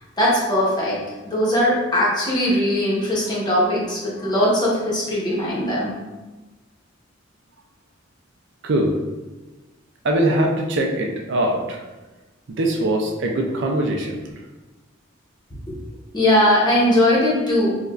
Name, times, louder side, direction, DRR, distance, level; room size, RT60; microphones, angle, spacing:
voice 1, 0.2-1.0 1.2-5.9 15.7-15.8 16.1-17.8, left 1 dB, 20° left, -6 dB, 1.0 m, -20 dB
voice 2, 8.6-9.0 10.0-11.8 12.5-14.2, right 1 dB, 65° right, 2 dB, 0.5 m, -22 dB
4.7 x 2.4 x 2.4 m, 1.2 s
head